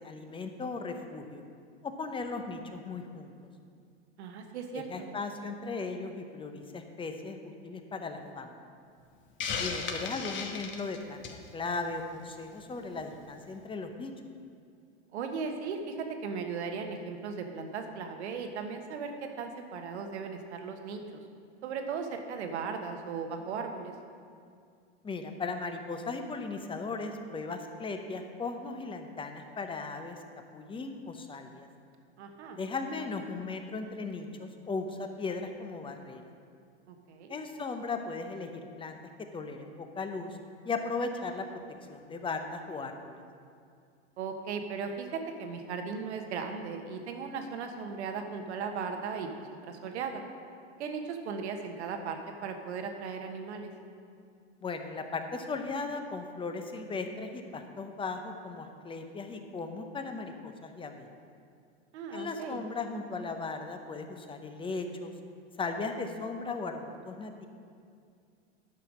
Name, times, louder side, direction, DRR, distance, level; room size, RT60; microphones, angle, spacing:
voice 1, 0.0-1.4 1.8-3.3 4.9-8.6 9.6-14.1 25.0-30.2 30.5-31.7 32.5-36.2 37.3-39.0 39.3-40.4 40.6-41.6 41.9-43.2 54.6-61.1 62.1-65.1 65.6-67.5, left 3 dB, 15° left, 6 dB, 0.8 m, -37 dB
voice 2, 4.2-5.1 15.1-21.2 21.6-23.9 32.2-32.6 36.9-37.3 44.2-49.3 49.7-50.2 50.8-53.7 61.9-62.6, right 5 dB, 75° right, 5 dB, 1.3 m, -37 dB
Hiss, 9.4-11.5, left 5 dB, 35° left, 1.2 m, -35 dB
10.5 x 5.7 x 6.3 m, 2.3 s
hypercardioid pair, 110°, 34 cm